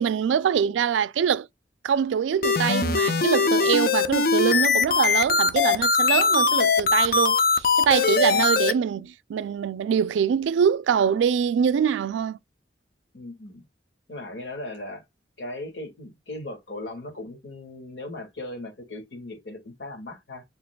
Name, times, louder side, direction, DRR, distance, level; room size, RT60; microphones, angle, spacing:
voice 1, 0.0-1.5 1.8-12.4, right 7 dB, 90° right, 0.3 m, -24 dB
sound 1, 2.4-8.7, left 4 dB, 55° left, 0.6 m, -21 dB
voice 2, 13.1-13.6 14.1-15.0 15.4-20.4, left 2 dB, 70° left, 1.8 m, -38 dB
6.8 x 2.8 x 2.2 m
head